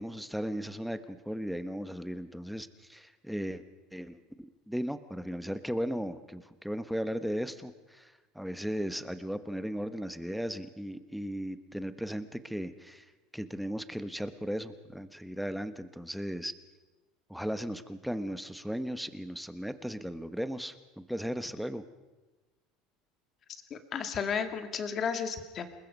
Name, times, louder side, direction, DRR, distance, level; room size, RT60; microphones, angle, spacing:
voice 1, 0.0-3.6 3.9-13.0 13.3-16.5 17.3-21.8, equal, ahead, 11 dB, 1.2 m, -36 dB
voice 2, 23.7-25.7, left 6 dB, 35° left, 8 dB, 2.1 m, -33 dB
28.0 x 20.5 x 5.4 m, 1.2 s
supercardioid pair, 125°, 0 cm